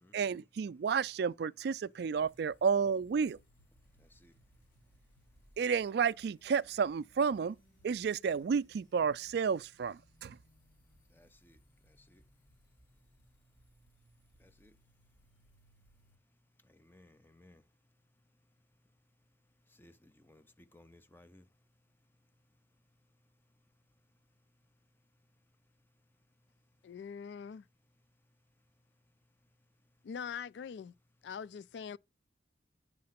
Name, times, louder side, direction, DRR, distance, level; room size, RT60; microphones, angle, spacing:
voice 1, 0.1-3.4 5.6-7.6 7.8-10.4, right 6 dB, 60° right, 0.3 m, -31 dB
sound 1, 2.1-16.2, equal, 45° left, 2.5 m, -66 dB
voice 2, 4.0-4.3 11.1-11.6 12.1-12.2 14.4-14.7 16.7-17.6 19.8-21.4, left 1 dB, 10° left, 0.6 m, -61 dB
voice 3, 26.8-27.6 30.0-30.9 31.2-32.0, left 7 dB, 70° left, 0.3 m, -43 dB
8.6 x 3.8 x 5.8 m
head